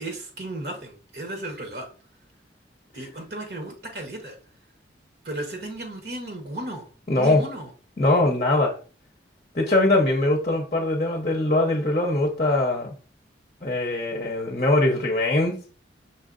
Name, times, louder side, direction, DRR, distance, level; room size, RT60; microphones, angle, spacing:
voice 1, 0.0-1.9 2.9-4.4 5.2-6.9 7.2-7.7, right 1 dB, 55° right, 3 dB, 1.0 m, -35 dB
voice 2, 7.1-7.4 8.0-8.8 9.5-12.9 13.6-15.5, left 2 dB, 35° left, 1 dB, 0.7 m, -22 dB
5.7 x 3.7 x 2.5 m, 0.38 s
head